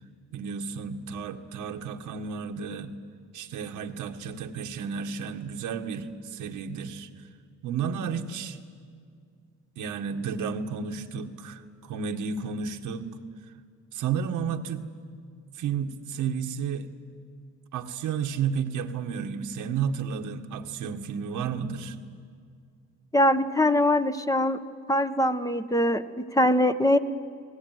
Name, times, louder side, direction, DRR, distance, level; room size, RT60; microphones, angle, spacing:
voice 1, 0.3-2.9 3.3-7.1 7.6-8.6 9.8-13.0 13.9-14.9 15.6-16.9 17.7-22.0, right 6 dB, 85° right, 4 dB, 1.9 m, -32 dB
voice 2, 23.1-24.6 24.9-27.0, left 1 dB, 10° left, 9 dB, 1.1 m, -22 dB
29.5 x 19.0 x 9.5 m, 2.2 s
cardioid pair, 90°, 30 cm